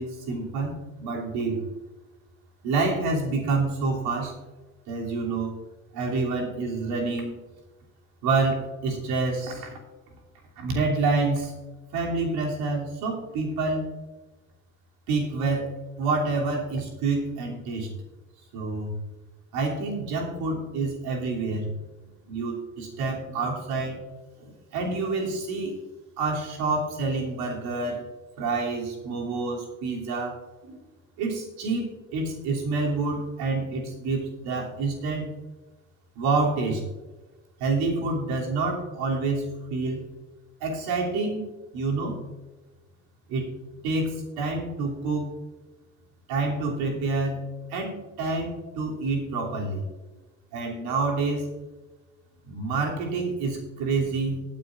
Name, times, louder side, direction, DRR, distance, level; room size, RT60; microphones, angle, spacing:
voice 1, 0.0-1.6 2.6-4.3 4.9-5.5 5.9-7.4 8.2-9.8 10.6-11.6 11.9-13.9 15.1-17.9 18.5-19.0 19.5-21.7 22.3-24.0 24.4-25.8 26.2-28.1 28.4-30.8 31.2-35.3 36.1-36.8 37.6-40.1 40.6-42.2 43.3-43.5 43.8-45.4 46.3-47.4 47.7-49.8 50.5-51.5 52.4-54.4, right 3 dB, 55° right, -1 dB, 3.0 m, -28 dB
18.5 x 9.6 x 2.5 m, 1.2 s
figure-of-eight pair, 65°, 44 cm